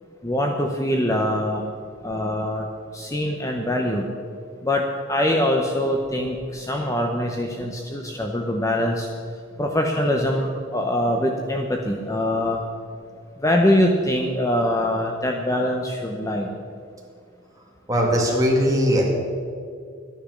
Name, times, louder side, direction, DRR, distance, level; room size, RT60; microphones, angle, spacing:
voice 1, 0.2-1.6 2.0-2.7 2.9-4.1 4.6-9.1 9.6-12.6 13.4-16.5, left 1 dB, 15° left, 2 dB, 0.8 m, -23 dB
voice 2, 17.9-19.0, equal, 15° right, -2 dB, 2.3 m, -19 dB
12.5 x 10.0 x 6.5 m, 2.3 s
head